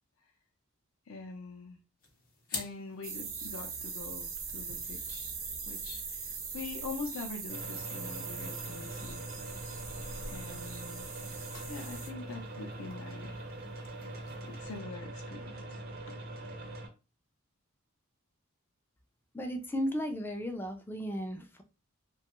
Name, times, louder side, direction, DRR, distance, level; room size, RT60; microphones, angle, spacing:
voice 1, 1.1-1.8 2.5-5.3 5.7-9.3 10.3-11.1 11.7-13.4 14.4-15.8 16.1-16.2, left 4 dB, 70° left, 3 dB, 0.5 m, -44 dB
sound 1, 2.0-14.8, left 4 dB, 40° left, 0.8 m, -51 dB
sound 2, 3.0-12.1, right 5 dB, 75° right, 0.8 m, -41 dB
sound 3, 7.5-16.9, right 1 dB, 45° right, 0.5 m, -43 dB
voice 2, 19.3-21.6, equal, 10° left, 5 dB, 0.3 m, -35 dB
2.8 x 2.2 x 2.9 m, 0.31 s
head